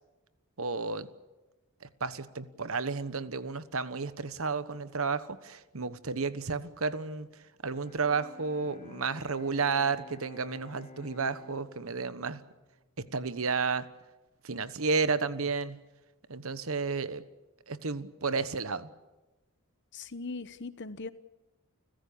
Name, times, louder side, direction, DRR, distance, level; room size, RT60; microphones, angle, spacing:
voice 1, 0.6-1.1 1.8-7.3 7.6-12.4 13.0-13.9 14.4-15.8 16.3-17.2 17.7-18.9, right 4 dB, 70° right, 13 dB, 1.2 m, -32 dB
Bowed string instrument, 7.7-13.7, left 3 dB, 35° left, 1.8 m, -53 dB
voice 2, 19.9-21.1, left 3 dB, 55° left, 14 dB, 1.0 m, -39 dB
29.5 x 15.5 x 8.7 m, 1.1 s
head